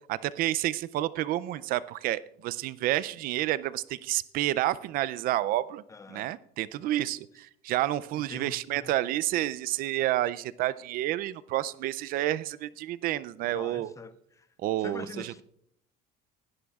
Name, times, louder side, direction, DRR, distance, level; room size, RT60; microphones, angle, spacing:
voice 1, 0.1-5.8 6.1-13.9 14.6-15.3, right 14 dB, 60° right, 0.4 m, -30 dB
voice 2, 5.9-6.3 6.8-7.0 8.1-8.9 13.4-14.5 14.8-15.4, left 4 dB, 20° left, 0.5 m, -45 dB
19.5 x 11.5 x 2.4 m
cardioid pair, 135°, 17 cm